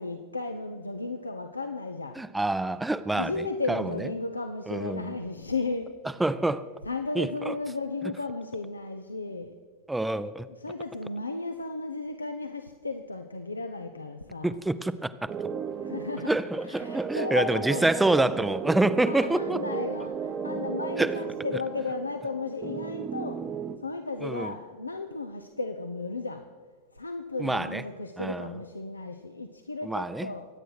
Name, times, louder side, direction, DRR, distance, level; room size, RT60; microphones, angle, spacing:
voice 1, 0.0-2.2 3.1-5.9 6.8-9.6 10.5-14.6 15.8-17.8 19.1-23.4 23.8-26.4 26.9-30.5, left 3 dB, 80° left, 7 dB, 0.8 m, -34 dB
voice 2, 2.2-3.8 4.7-5.1 6.2-6.7 7.2-7.5 9.9-10.5 14.4-15.3 16.3-19.6 21.0-21.1 24.2-24.5 27.4-27.8 28.2-28.5 29.8-30.3, right 2 dB, 5° right, 14 dB, 0.7 m, -27 dB
sound 1, 15.3-23.8, right 6 dB, 25° right, 1.0 m, -35 dB
24.0 x 9.2 x 6.3 m, 1.5 s
figure-of-eight pair, 90°, 0 cm